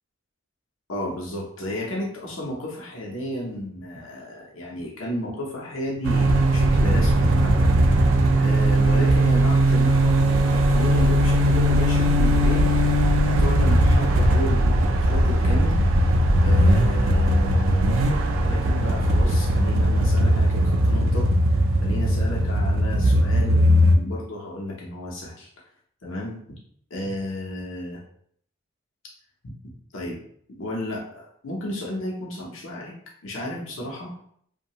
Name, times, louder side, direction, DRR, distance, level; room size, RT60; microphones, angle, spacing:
voice 1, 0.9-7.7 8.4-12.8 13.2-15.8 16.4-25.5 26.0-26.6 26.9-28.0 29.9-30.2 30.5-32.9 33.2-34.1, left 1 dB, 85° left, -3 dB, 0.7 m, -32 dB
sound 1, 6.0-24.0, right 1 dB, 85° right, 0.4 m, -19 dB
2.6 x 2.2 x 2.9 m, 0.64 s
head